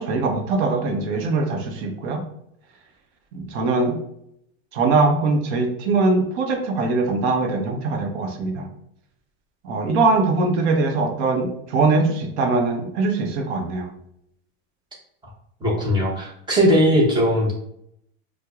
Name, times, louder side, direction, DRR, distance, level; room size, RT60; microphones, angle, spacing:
voice 1, 0.0-2.2 3.3-4.0 4.7-8.7 9.6-13.9, right 3 dB, 60° right, 3 dB, 0.9 m, -22 dB
voice 2, 15.6-17.5, equal, 10° right, -4 dB, 0.9 m, -19 dB
4.5 x 2.2 x 2.4 m, 0.73 s
supercardioid pair, 155°, 38 cm